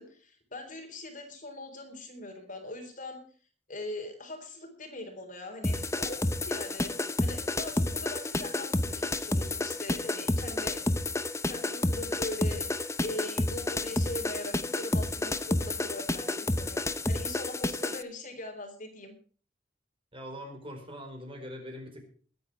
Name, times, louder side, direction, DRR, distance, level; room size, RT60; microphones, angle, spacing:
voice 1, 0.0-3.2 3.7-6.2 6.4-10.8 11.4-12.7 13.0-19.1, left 2 dB, 45° left, 4 dB, 3.9 m, -41 dB
sound 1, 5.6-18.0, left 2 dB, 15° left, 0.8 m, -30 dB
voice 2, 20.1-22.0, equal, 30° right, 3 dB, 4.5 m, -42 dB
22.0 x 9.5 x 4.6 m, 0.43 s
head